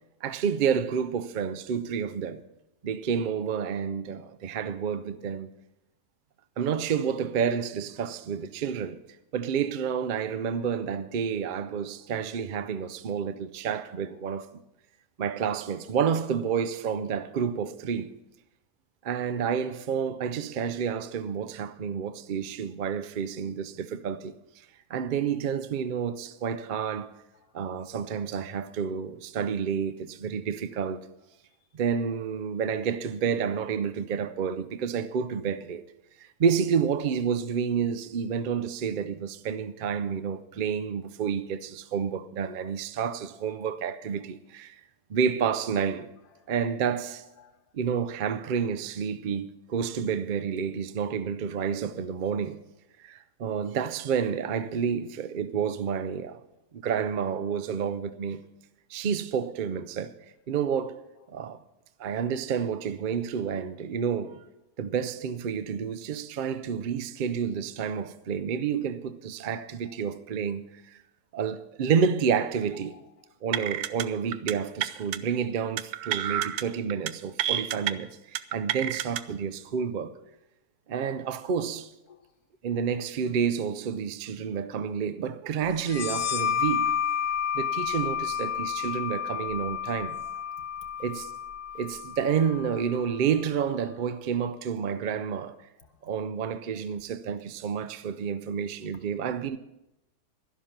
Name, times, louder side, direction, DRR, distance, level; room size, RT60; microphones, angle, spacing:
voice 1, 0.2-2.4 2.8-5.5 6.6-9.0 9.3-14.5 15.2-18.1 19.0-24.4 24.9-27.1 27.5-31.0 31.7-35.8 36.2-44.8 45.1-46.1 46.5-47.2 47.7-52.6 53.0-56.4 56.7-58.4 58.9-60.2 60.5-61.0 61.3-61.6 62.0-64.4 64.8-71.0 71.3-72.9 73.4-80.1 80.9-81.9 82.6-86.9 87.5-90.2 91.0-91.3 91.7-95.6 96.0-99.6, right 7 dB, 65° right, 0.4 m, -29 dB
voice 2, 47.2-47.8 61.1-61.4 69.8-70.2 72.7-73.3 76.1-76.2 82.1-82.4 83.9-84.0 90.2-90.7 95.8-96.0 96.7-96.8, left 7 dB, 85° left, 1.7 m, -58 dB
sound 1, 73.5-74.0 74.3-74.5 74.8-75.2 75.8-76.6 76.9-77.1 77.4-77.9 78.3-79.2, right 11 dB, 90° right, 1.1 m, -29 dB
sound 2, 85.8-93.2, left 8 dB, 55° left, 0.9 m, -31 dB
12.0 x 11.5 x 5.9 m
omnidirectional pair, 1.6 m